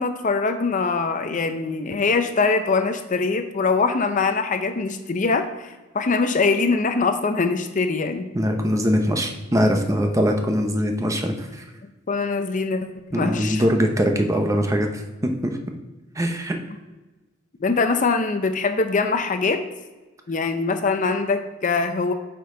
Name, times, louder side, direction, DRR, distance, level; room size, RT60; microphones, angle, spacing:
voice 1, 0.0-8.2 12.1-12.8 13.1-13.7 17.6-19.6 20.3-22.1, left 4 dB, 40° left, 8 dB, 0.6 m, -23 dB
voice 2, 8.3-11.6 13.1-15.6 16.2-16.6, equal, 15° right, 4 dB, 0.7 m, -22 dB
8.7 x 5.2 x 3.8 m, 1.2 s
head